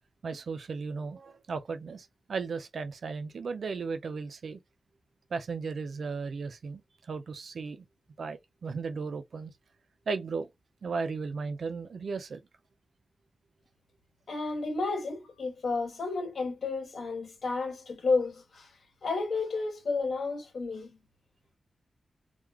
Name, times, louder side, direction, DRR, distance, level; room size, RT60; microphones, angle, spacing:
voice 1, 0.2-4.6 5.3-7.8 8.2-9.5 10.1-10.5 10.8-12.4, right 4 dB, 55° right, 0.5 m, -35 dB
voice 2, 14.3-18.7 19.0-21.0, left 3 dB, 60° left, 1.9 m, -31 dB
3.8 x 3.0 x 3.0 m
wide cardioid pair, 160°, 0 cm